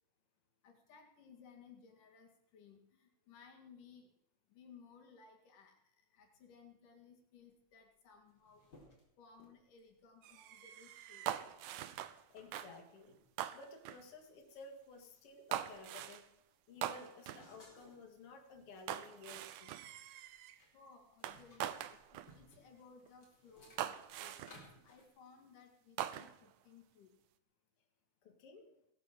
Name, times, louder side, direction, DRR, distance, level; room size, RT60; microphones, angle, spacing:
voice 1, 0.6-4.1 4.5-5.8 6.1-8.7 9.2-11.3 20.7-27.1, left 5 dB, 85° left, 2 dB, 3.8 m, -61 dB
sound 1, 7.8-7.9 8.1-10.0 10.6-10.8 11.3-12.5 13.0-13.3 13.8-14.0 14.3-16.2 16.5-18.1 18.5-20.7 21.0-25.1, left 1 dB, 30° left, 5.1 m, -64 dB
sound 2, 10.2-12.2 12.5-12.8 13.4-14.0 15.5-16.3 16.8-17.5 18.9-20.6 21.2-22.3 23.1-23.2 23.8-24.6 26.0-26.5, right 12 dB, 85° right, 2.4 m, -43 dB
voice 2, 12.3-13.2 13.5-16.2 16.7-19.8 28.2-28.8, left 3 dB, 50° left, 3 dB, 3.1 m, -54 dB
18.0 x 10.5 x 7.6 m, 0.75 s
omnidirectional pair, 3.6 m